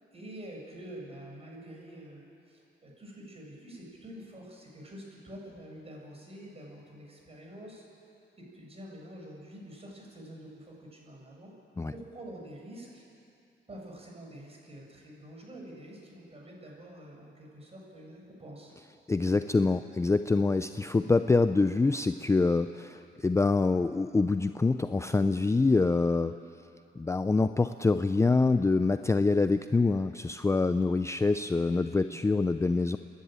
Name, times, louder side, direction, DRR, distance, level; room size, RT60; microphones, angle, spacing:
voice 1, 0.1-7.8 8.4-11.5 11.9-13.0 13.7-18.7 32.1-32.2, right 1 dB, 30° right, -1 dB, 6.4 m, -47 dB
voice 2, 19.1-26.3 27.0-33.0, left 3 dB, 15° left, 10 dB, 0.5 m, -25 dB
29.5 x 11.0 x 8.9 m, 2.6 s
cardioid pair, 90°, 20 cm